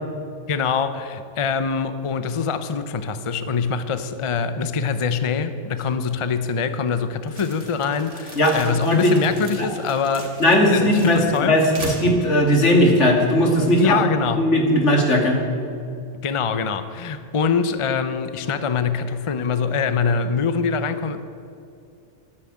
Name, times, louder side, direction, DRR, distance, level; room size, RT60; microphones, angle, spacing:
voice 1, 0.5-10.3 10.7-11.6 13.8-14.5 16.2-21.2, left 5 dB, 35° left, 10 dB, 0.6 m, -24 dB
sound 1, 7.3-13.4, right 2 dB, 85° right, 3.2 m, -38 dB
voice 2, 8.4-9.1 9.6-9.7 10.4-14.0 14.4-15.4, equal, 80° left, 1 dB, 2.6 m, -18 dB
13.5 x 9.9 x 8.7 m, 2.6 s
omnidirectional pair, 1.2 m